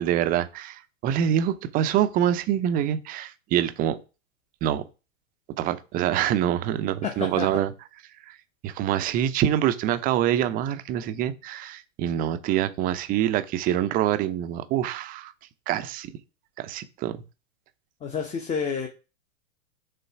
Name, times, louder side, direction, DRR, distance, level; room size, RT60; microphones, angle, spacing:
voice 1, 0.0-4.0 4.6-4.8 5.6-7.7 8.3-8.4 8.6-15.3 15.7-16.1 16.6-17.1, right 11 dB, 20° right, 0.6 m, -25 dB
voice 2, 7.0-7.6 18.0-18.9, left 6 dB, 15° left, 0.8 m, -29 dB
6.7 x 3.7 x 5.8 m
figure-of-eight pair, 105°, 39 cm